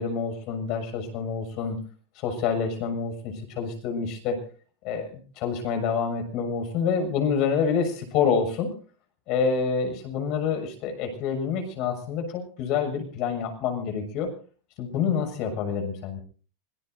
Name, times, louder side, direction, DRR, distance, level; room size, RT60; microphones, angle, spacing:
voice 1, 0.0-1.8 2.1-4.4 4.8-8.7 9.3-14.3 14.8-16.2, left 6 dB, 50° left, 6 dB, 6.7 m, -27 dB
26.0 x 18.5 x 2.7 m, 0.41 s
supercardioid pair, 130°, 0 cm